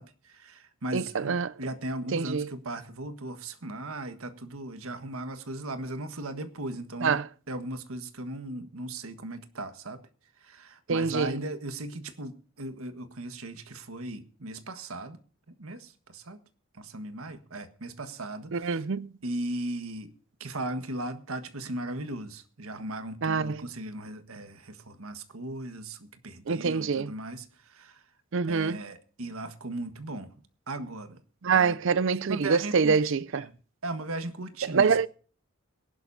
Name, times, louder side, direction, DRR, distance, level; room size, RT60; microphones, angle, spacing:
voice 1, 0.0-7.2 7.5-10.0 10.4-15.2 15.5-16.4 16.8-18.8 19.2-20.1 20.4-28.0 28.5-31.2 31.5-31.8 32.3-33.6 33.8-35.0, right 2 dB, 85° right, 1.6 m, -37 dB
voice 2, 0.9-1.5 2.1-2.5 7.0-7.3 10.9-11.4 18.5-19.1 23.2-23.6 26.5-27.1 28.3-28.8 31.4-33.5 34.7-35.1, right 5 dB, 60° right, 0.5 m, -25 dB
22.5 x 11.5 x 2.7 m
head